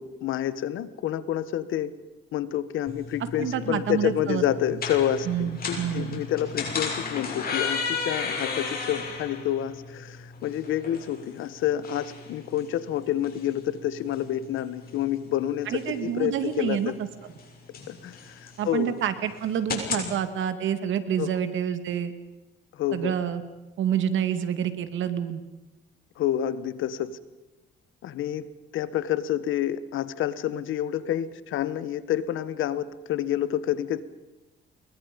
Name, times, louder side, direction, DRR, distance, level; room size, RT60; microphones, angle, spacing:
voice 1, 0.0-1.9 2.3-16.9 17.9-19.0 19.9-20.1 21.2-21.3 22.7-23.1 26.2-27.2 28.0-28.5 28.7-34.0, left 11 dB, 85° left, 15 dB, 1.4 m, -28 dB
sound 1, 2.9-20.1, left 4 dB, 50° left, 6.7 m, -35 dB
voice 2, 3.4-4.4 5.3-6.2 15.7-16.9 18.6-22.1 22.9-23.4 23.8-25.4, right 9 dB, 75° right, 10 dB, 2.3 m, -28 dB
29.0 x 22.5 x 5.4 m, 1.0 s
cardioid pair, 90°, 20 cm